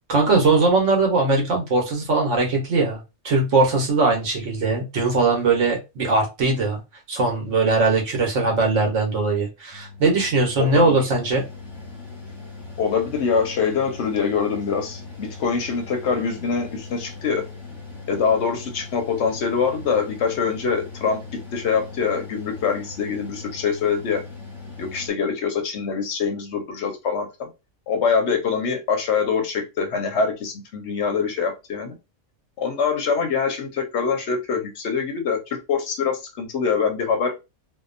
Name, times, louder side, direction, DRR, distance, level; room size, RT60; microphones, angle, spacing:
voice 1, 0.1-3.0 3.2-6.8 7.1-11.4, right 3 dB, 60° right, 0 dB, 1.2 m, -20 dB
Mechanical fan, 9.7-25.1, left 4 dB, ahead, 0.8 m, -39 dB
voice 2, 12.8-17.5 18.1-21.2 21.5-24.2 24.8-27.5 27.9-31.9 32.6-37.3, left 6 dB, 60° left, 5 dB, 0.8 m, -24 dB
2.7 x 2.2 x 2.4 m, 0.25 s
omnidirectional pair, 1.5 m